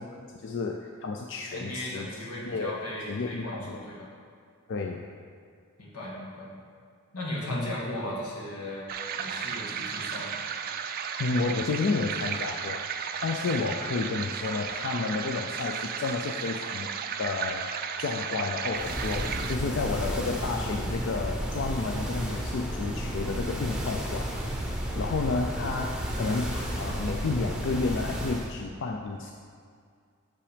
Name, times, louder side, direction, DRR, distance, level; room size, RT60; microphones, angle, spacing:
voice 1, 0.0-2.1 2.5-2.8 3.1-3.8 4.7-5.0 7.5-7.7 11.2-24.3 24.9-29.3, left 4 dB, 55° left, 2 dB, 0.4 m, -31 dB
voice 2, 1.5-4.1 5.8-6.5 7.1-8.9 9.2-10.3 26.2-26.4, left 1 dB, 90° left, -4 dB, 1.8 m, -37 dB
sound 1, 8.9-19.6, right 7 dB, 40° right, 0.3 m, -34 dB
sound 2, 18.7-28.5, equal, 5° right, 0.7 m, -32 dB
6.2 x 5.6 x 5.0 m, 2.2 s
head